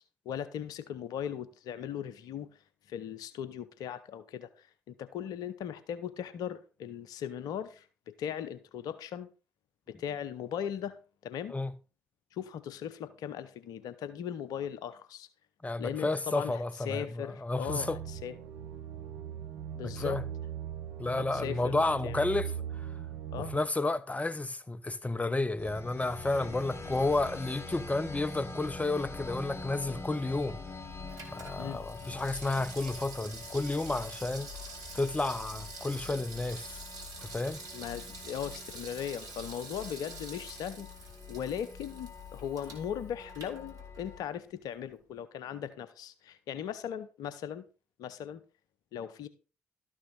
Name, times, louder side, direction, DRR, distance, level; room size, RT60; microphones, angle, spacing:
voice 1, 0.2-2.6 2.9-9.3 9.9-11.5 12.3-15.3 15.8-18.3 19.7-20.2 21.1-22.3 23.3-23.5 31.6-31.8 37.7-47.6 48.0-48.4 48.9-49.3, left 9 dB, 70° left, 0.8 m, -38 dB
voice 2, 15.6-18.0 20.0-20.2 21.0-22.5 22.8-22.9 23.4-30.6 31.3-34.5 34.9-36.8 37.2-37.6, left 2 dB, 20° left, 0.9 m, -31 dB
sound 1, 17.7-23.6, right 9 dB, 75° right, 0.9 m, -40 dB
sound 2, 25.6-44.2, left 3 dB, 35° left, 3.4 m, -45 dB
Water tap faucet / Sink (filling or washing), 30.0-44.3 44.6-44.7, right 3 dB, 60° right, 2.9 m, -47 dB
12.5 x 6.2 x 4.0 m
hypercardioid pair, 40°, 7 cm